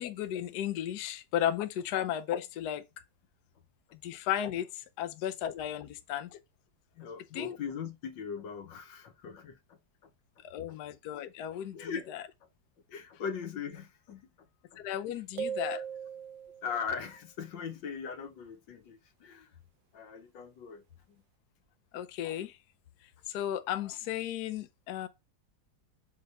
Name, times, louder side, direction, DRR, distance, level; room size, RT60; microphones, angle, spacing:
voice 1, 0.0-2.8 4.0-6.4 7.3-7.6 10.4-12.2 14.8-15.8 21.9-22.6 23.3-25.1, left 11 dB, 70° left, 1.1 m, -34 dB
voice 2, 7.0-10.1 10.7-10.8 11.7-12.1 12.9-14.8 15.1-15.2 16.6-19.5 19.9-20.8 21.1-21.2, left 6 dB, 90° left, 1.7 m, -40 dB
sound 1, 15.4-16.9, right 8 dB, 80° right, 1.4 m, -38 dB
5.3 x 4.2 x 5.4 m
omnidirectional pair, 2.0 m